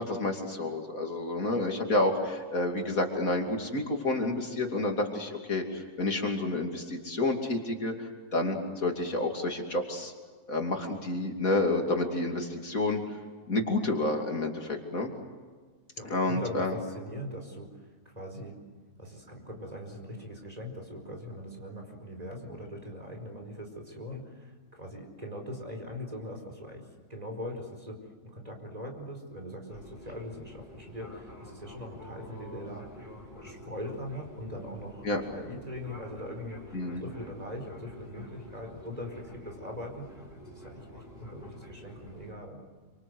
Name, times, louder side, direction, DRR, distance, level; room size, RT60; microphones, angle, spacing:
voice 1, 0.0-10.1 10.5-13.0 13.5-15.1 16.0-16.7 35.0-35.2 36.7-37.0, left 2 dB, 70° left, 3 dB, 3.3 m, -29 dB
voice 2, 15.9-17.7 18.0-18.6 19.0-32.8 33.3-36.6 37.0-40.1 40.4-42.6, left 1 dB, 25° right, 3 dB, 4.8 m, -41 dB
Fixed-wing aircraft airplane, 29.7-42.3, equal, 35° left, 6.4 m, -48 dB
27.5 x 26.0 x 8.0 m, 1.5 s
omnidirectional pair, 1.5 m